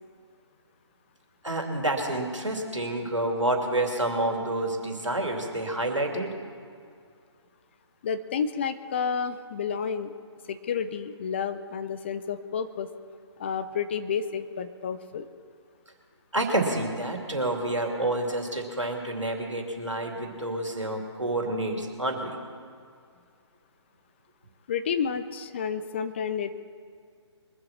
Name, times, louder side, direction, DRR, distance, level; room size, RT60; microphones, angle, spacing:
voice 1, 1.4-6.3 16.3-22.4, right 1 dB, 85° right, 2 dB, 2.8 m, -28 dB
voice 2, 8.0-10.1 10.5-12.9 13.4-15.3 24.7-26.5, left 6 dB, 25° left, 10 dB, 0.5 m, -30 dB
23.0 x 7.7 x 5.9 m, 2.2 s
figure-of-eight pair, 140°, 15 cm